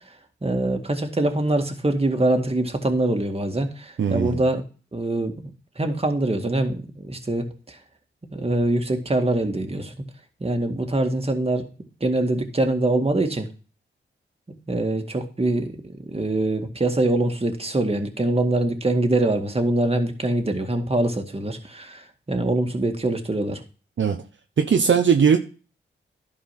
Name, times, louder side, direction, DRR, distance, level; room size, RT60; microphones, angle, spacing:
voice 1, 0.4-4.6 4.9-5.5 5.8-7.8 8.3-10.0 10.4-11.7 12.0-13.5 14.7-23.6, right 2 dB, 30° right, 5 dB, 2.0 m, -24 dB
voice 2, 4.0-4.5 24.0-24.2 24.6-25.4, right 6 dB, 65° right, 5 dB, 0.9 m, -19 dB
11.5 x 4.8 x 5.9 m, 0.36 s
cardioid pair, 45°, 21 cm